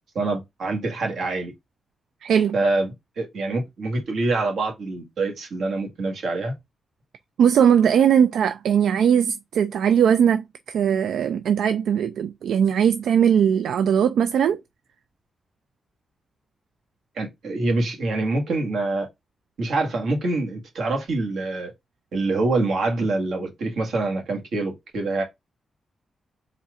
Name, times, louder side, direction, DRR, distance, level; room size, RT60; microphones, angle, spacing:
voice 1, 0.1-1.5 2.5-6.5 17.1-19.1 19.6-21.7 22.1-25.2, right 2 dB, 70° right, 1.6 m, -25 dB
voice 2, 2.2-2.6 7.4-14.6, right 8 dB, 90° right, 0.3 m, -19 dB
4.2 x 2.5 x 4.8 m
wide cardioid pair, 135°, 0 cm